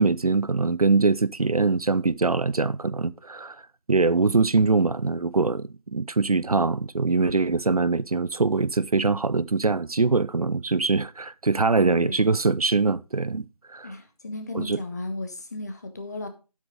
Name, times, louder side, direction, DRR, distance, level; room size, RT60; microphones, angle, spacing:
voice 1, 0.0-3.6 3.9-13.9 14.5-14.8, right 3 dB, 65° right, 0.6 m, -23 dB
voice 2, 11.9-12.3 13.8-16.3, left 2 dB, 25° left, 1.3 m, -35 dB
9.8 x 8.1 x 3.7 m
figure-of-eight pair, 165°, 20 cm